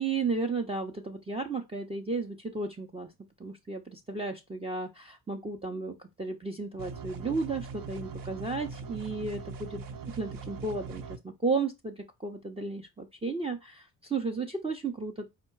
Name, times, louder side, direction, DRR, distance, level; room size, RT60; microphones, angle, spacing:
voice 1, 0.0-3.1 3.4-9.8 10.1-15.3, right 4 dB, 15° right, 0.6 m, -34 dB
sound 1, 6.8-11.2, right 4 dB, 55° right, 0.8 m, -41 dB
4.7 x 2.2 x 4.5 m
supercardioid pair, 65°, 41 cm